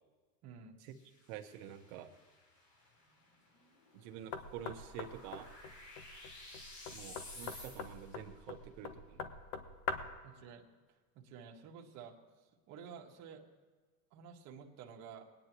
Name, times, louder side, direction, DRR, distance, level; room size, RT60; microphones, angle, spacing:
voice 1, 0.4-0.8 10.2-12.2 12.7-13.4 14.1-15.2, right 7 dB, 35° right, 0 dB, 1.5 m, -52 dB
sound 1, 0.8-8.2, left 2 dB, 45° left, 4.3 m, -55 dB
voice 2, 1.3-2.1 3.9-5.5 6.9-9.3, right 10 dB, 50° right, 6 dB, 1.2 m, -48 dB
Knock, 4.3-10.2, left 5 dB, 60° left, 1.3 m, -44 dB
20.5 x 9.7 x 3.0 m, 1.4 s
supercardioid pair, 150°, 49 cm